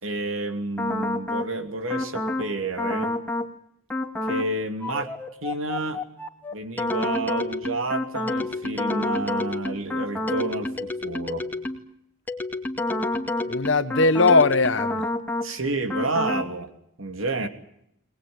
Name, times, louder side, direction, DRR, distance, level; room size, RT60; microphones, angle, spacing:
voice 1, 0.0-3.1 4.2-5.1 5.4-6.0 6.5-11.5 15.4-16.7 17.0-17.5, right 2 dB, 85° right, 2.9 m, -30 dB
sound 1, 0.8-1.5 1.9-2.5 2.8-3.5 3.9-4.5 4.8-11.9 12.3-15.5 15.9-16.5, left 2 dB, 10° left, 2.3 m, -29 dB
voice 2, 13.5-15.0 17.4-17.5, left 3 dB, 65° left, 1.2 m, -19 dB
22.5 x 20.0 x 9.7 m
head